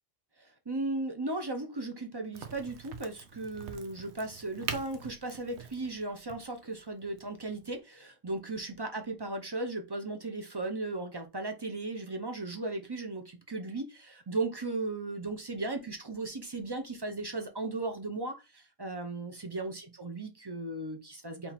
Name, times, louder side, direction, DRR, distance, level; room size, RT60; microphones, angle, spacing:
voice 1, 0.4-21.5, right 2 dB, 25° right, 0.6 m, -36 dB
Crack, 2.3-7.8, right 6 dB, 85° right, 1.0 m, -44 dB
3.6 x 2.9 x 4.1 m
omnidirectional pair, 1.1 m